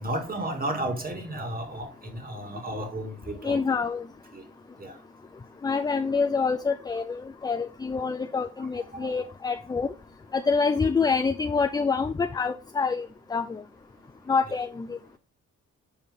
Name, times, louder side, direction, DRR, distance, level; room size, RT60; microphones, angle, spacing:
voice 1, 0.0-3.6 4.3-4.4 4.8-5.0 8.8-8.9 14.5-14.6, right 1 dB, 30° right, 2.0 m, -33 dB
voice 2, 3.4-4.0 5.6-9.9 10.3-13.1 13.3-13.6 14.3-14.9, left 5 dB, 15° left, 0.3 m, -26 dB
7.4 x 4.5 x 3.5 m
cardioid pair, 90°, 30 cm